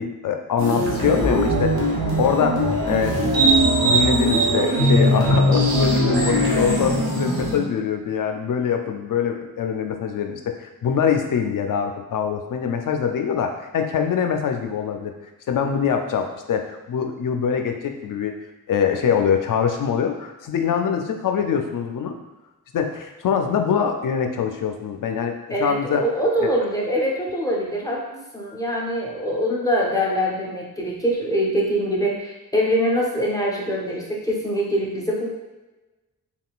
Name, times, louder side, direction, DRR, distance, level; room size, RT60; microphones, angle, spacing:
voice 1, 0.0-15.1 15.5-18.3 18.7-22.2 22.7-26.0 26.4-26.5, left 7 dB, 60° left, 5 dB, 0.5 m, -24 dB
sound 1, 0.6-7.6, right 1 dB, 80° right, 0.9 m, -20 dB
voice 2, 25.5-35.3, equal, 10° left, -3 dB, 0.6 m, -24 dB
3.6 x 2.3 x 2.4 m, 1.1 s
cardioid pair, 70°, 36 cm